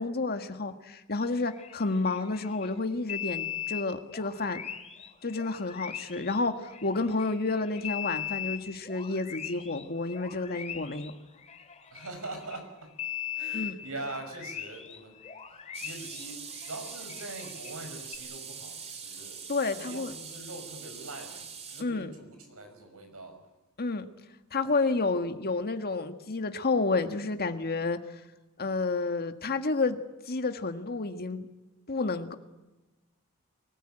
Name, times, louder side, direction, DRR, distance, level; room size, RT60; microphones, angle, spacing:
voice 1, 0.0-4.6 5.2-11.1 13.5-13.8 19.5-20.1 21.8-22.1 23.8-24.1 24.5-28.0 28.6-30.0 30.3-31.5 31.9-32.3, left 3 dB, 45° left, 7 dB, 1.7 m, -30 dB
sound 1, 1.2-2.7 3.1-12.6 13.0-17.8 18.1-18.2, left 10 dB, 30° left, 2.4 m, -40 dB
voice 2, 11.9-13.0 13.3-15.2 15.5-19.4 19.7-23.4, right 2 dB, 70° right, 6 dB, 6.0 m, -43 dB
sound 2, 15.7-21.8, right 6 dB, 30° right, 2.3 m, -43 dB
24.5 x 18.5 x 9.0 m, 1.1 s
head